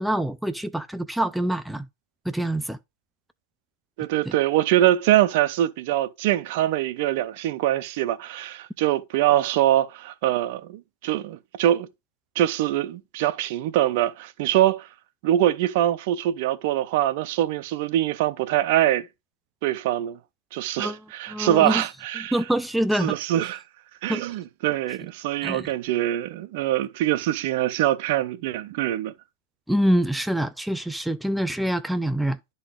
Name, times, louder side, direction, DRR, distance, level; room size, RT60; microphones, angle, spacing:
voice 1, 0.0-1.9 2.3-2.8 4.3-4.4 20.8-21.0 21.3-21.8 22.2-23.2 24.1-24.2 25.4-25.7 29.7-32.4, right 1 dB, ahead, 0.4 m, -25 dB
voice 2, 4.0-11.9 12.4-14.9 15.2-19.1 19.6-20.2 20.5-22.3 23.0-23.6 24.0-29.1, right 13 dB, 55° right, 0.7 m, -23 dB
11.0 x 4.1 x 3.7 m
hypercardioid pair, 130°, 0 cm